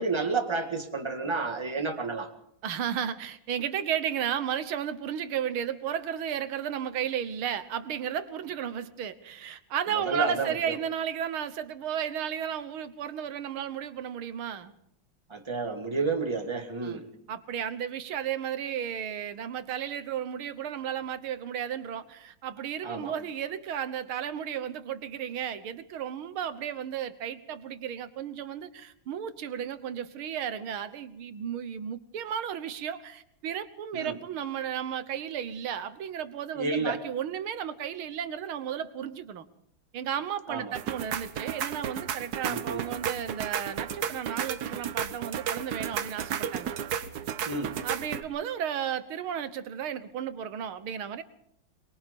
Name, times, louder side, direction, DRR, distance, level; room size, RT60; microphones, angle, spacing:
voice 1, 0.0-2.3 10.1-10.8 15.3-17.1 22.8-23.1 33.9-34.2 36.5-37.0 40.5-40.7 42.4-42.8 47.5-47.8, right 4 dB, 15° right, 5 dB, 1.8 m, -30 dB
voice 2, 2.6-14.7 16.8-17.0 17.3-39.4 39.9-46.7 47.8-51.2, right 9 dB, 75° right, 12 dB, 1.9 m, -34 dB
sound 1, 40.8-48.2, right 8 dB, 55° right, 1.3 m, -33 dB
23.5 x 21.5 x 5.3 m, 0.72 s
omnidirectional pair, 2.4 m